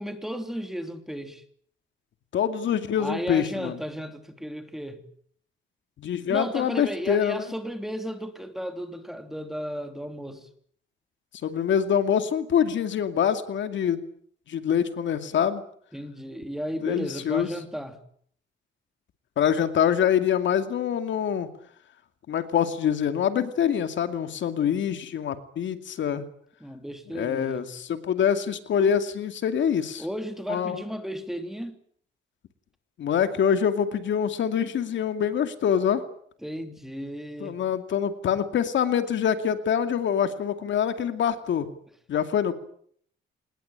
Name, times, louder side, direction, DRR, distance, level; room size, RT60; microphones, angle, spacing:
voice 1, 0.0-1.4 3.0-5.0 6.3-10.5 15.9-18.0 26.6-27.7 30.0-31.8 36.4-37.6, equal, ahead, 3.0 m, -34 dB
voice 2, 2.3-3.8 6.0-7.5 11.4-14.0 14.5-15.6 16.8-17.5 19.4-21.5 22.3-26.2 27.1-30.0 30.5-30.8 33.0-36.0 37.4-41.7 42.1-42.5, left 8 dB, 70° left, 2.5 m, -25 dB
26.0 x 20.5 x 8.9 m
cardioid pair, 130°, 20 cm